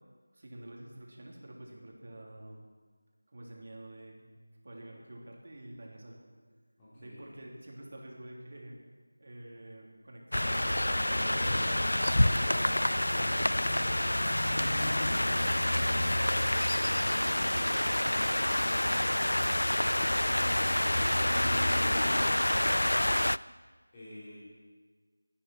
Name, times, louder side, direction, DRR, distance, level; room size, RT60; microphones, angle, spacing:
voice 1, 0.3-2.6 3.3-4.3 4.6-6.2 6.9-8.8 9.2-14.4, right 1 dB, 50° right, -1 dB, 3.1 m, -48 dB
voice 2, 6.8-7.3 14.4-23.2 23.9-24.4, left 1 dB, 15° left, -10 dB, 3.7 m, -49 dB
sound 1, 10.3-23.4, left 1 dB, 85° left, 0.3 m, -28 dB
23.0 x 9.9 x 4.6 m, 1.4 s
figure-of-eight pair, 170°, 0 cm